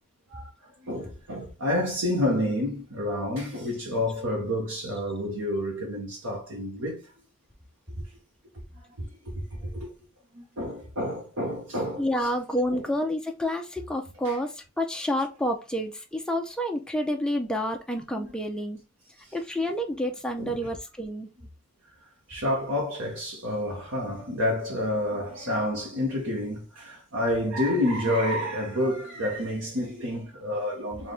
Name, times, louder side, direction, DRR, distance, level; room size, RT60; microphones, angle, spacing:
voice 1, 0.3-7.1 8.8-9.1 9.3-9.9 10.3-12.3 12.7-12.8 14.2-14.4 18.2-18.3 19.2-19.3 20.4-20.7 22.3-31.1, left 1 dB, 70° right, 1.2 m, -29 dB
voice 2, 12.0-18.8 19.3-21.3, equal, 5° left, 0.7 m, -29 dB
4.3 x 2.6 x 3.3 m
head